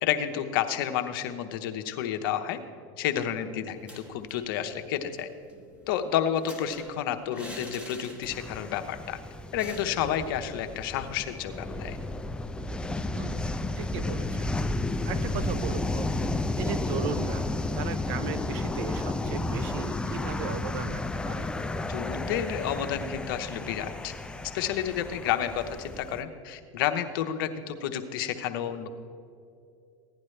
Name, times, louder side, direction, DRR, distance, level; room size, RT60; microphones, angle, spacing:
voice 1, 0.0-2.6 3.0-5.3 5.9-9.2 9.5-12.0 21.9-24.1 24.5-28.9, left 10 dB, 75° left, 7 dB, 0.9 m, -30 dB
sound 1, 3.7-4.5 4.8-4.9 5.2-8.7 8.9-9.1 9.6-10.3, equal, 10° right, 1.7 m, -45 dB
sound 2, 8.3-26.2, left 2 dB, 10° left, 0.4 m, -32 dB
voice 2, 13.1-13.5 13.8-14.5 15.0-16.1 16.6-21.5, right 8 dB, 65° right, 14 dB, 0.6 m, -37 dB
16.0 x 10.5 x 3.3 m, 2.4 s
supercardioid pair, 110°, 12 cm